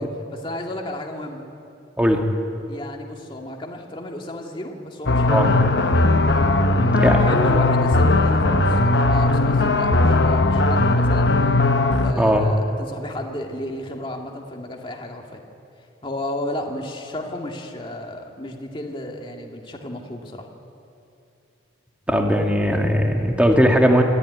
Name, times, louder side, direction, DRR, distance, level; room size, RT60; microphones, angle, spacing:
voice 1, 0.0-1.5 2.7-5.4 6.7-11.4 12.0-15.4 16.0-20.5, left 1 dB, 25° left, 1 dB, 2.2 m, -32 dB
sound 1, 5.1-12.1, left 2 dB, 70° left, 1.1 m, -18 dB
voice 2, 22.1-24.0, equal, 5° right, 2 dB, 1.9 m, -18 dB
26.0 x 14.5 x 9.5 m, 2.7 s
head